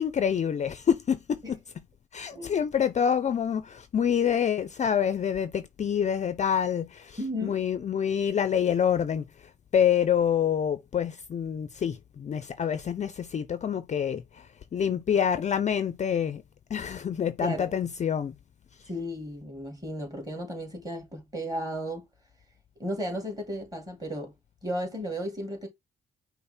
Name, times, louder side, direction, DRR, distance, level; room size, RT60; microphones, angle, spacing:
voice 1, 0.0-1.6 2.1-16.4 16.7-18.3, left 8 dB, 35° left, 0.4 m, -27 dB
voice 2, 2.3-2.6 7.2-7.6 17.4-17.7 18.9-22.1 22.8-24.3 24.6-25.7, equal, 20° right, 2.1 m, -34 dB
5.5 x 2.0 x 4.2 m
cardioid pair, 90°, 20 cm